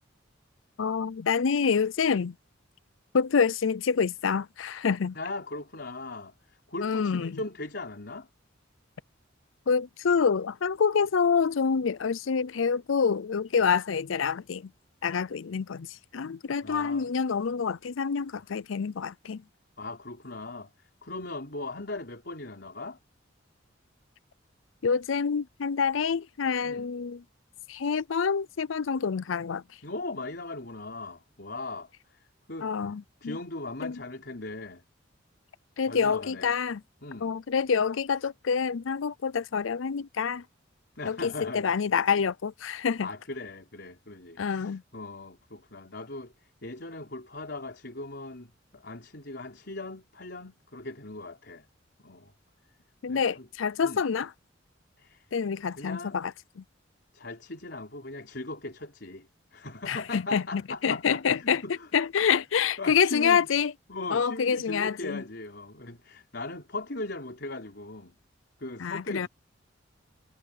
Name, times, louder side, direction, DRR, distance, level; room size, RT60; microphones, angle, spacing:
voice 1, 0.8-2.4 3.1-5.2 6.8-7.4 9.7-14.7 15.0-19.4 24.8-27.2 27.7-29.6 32.6-33.4 33.8-34.0 35.8-36.8 37.2-40.4 41.1-43.1 44.4-44.8 53.0-54.3 55.3-56.6 59.9-61.6 61.9-63.7 64.1-65.2 68.8-69.3, left 6 dB, 85° left, 0.5 m, -27 dB
voice 2, 5.1-8.3 16.6-17.1 19.8-23.0 26.6-26.9 29.8-32.7 33.2-34.8 35.8-36.5 37.0-37.3 41.0-41.8 43.0-51.7 52.0-52.3 53.1-53.5 53.8-54.0 55.0-55.3 55.8-56.2 57.1-61.9 62.8-63.5 63.9-68.1 68.6-69.3, left 2 dB, 60° left, 4.5 m, -39 dB
head